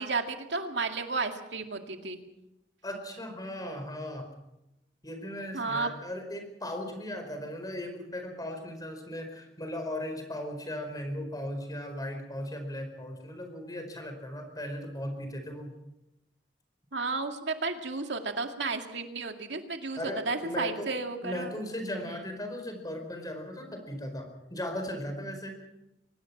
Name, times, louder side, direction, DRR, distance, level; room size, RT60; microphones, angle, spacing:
voice 1, 0.0-2.2 5.5-5.9 16.9-20.0 20.3-21.6 22.1-22.2, right 3 dB, 85° right, 5 dB, 2.2 m, -32 dB
voice 2, 2.8-4.3 5.0-15.7 20.0-25.7, left 1 dB, 20° left, 6 dB, 4.8 m, -37 dB
24.0 x 18.5 x 6.0 m, 0.87 s
head